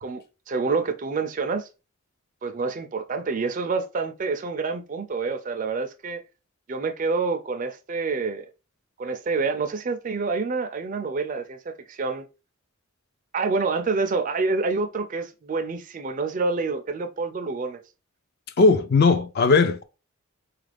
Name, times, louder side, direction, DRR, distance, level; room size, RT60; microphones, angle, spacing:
voice 1, 0.0-1.7 2.4-6.2 6.7-8.5 9.0-12.3 13.3-17.8, right 4 dB, 35° right, 0.4 m, -27 dB
voice 2, 18.6-19.8, left 4 dB, 45° left, 0.4 m, -18 dB
4.1 x 2.4 x 3.3 m
head